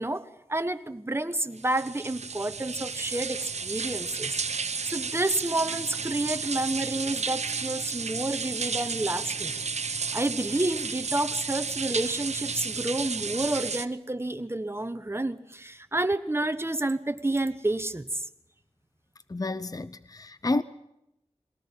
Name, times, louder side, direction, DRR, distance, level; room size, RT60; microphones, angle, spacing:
voice 1, 0.0-9.5 10.1-18.3, right 2 dB, 20° right, 1.2 m, -30 dB
sound 1, 1.6-13.9, right 5 dB, 90° right, 0.9 m, -32 dB
voice 2, 19.3-20.6, left 2 dB, 35° left, 0.7 m, -30 dB
22.5 x 17.5 x 7.3 m
wide cardioid pair, 60°, 11 cm